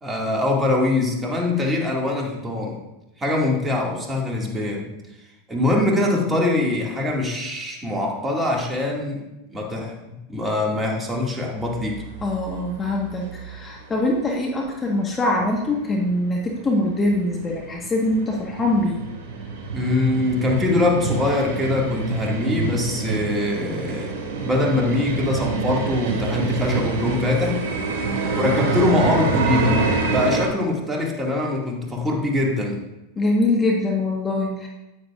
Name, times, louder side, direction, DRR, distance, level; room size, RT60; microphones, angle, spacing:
voice 1, 0.0-2.8 3.2-4.9 5.5-9.2 9.5-10.0 10.3-12.0 19.7-24.2 24.4-27.7 28.3-32.8, left 2 dB, 15° right, -1 dB, 2.2 m, -23 dB
sound 1, 11.6-13.7 14.0-14.1 14.6-14.7 15.0-15.1 15.4-30.5, right 3 dB, 60° right, 2.7 m, -27 dB
voice 2, 12.2-19.0 30.1-30.2 33.2-34.7, left 2 dB, 20° left, -1 dB, 1.4 m, -23 dB
9.5 x 9.2 x 2.5 m, 0.96 s
hypercardioid pair, 90°, 0 cm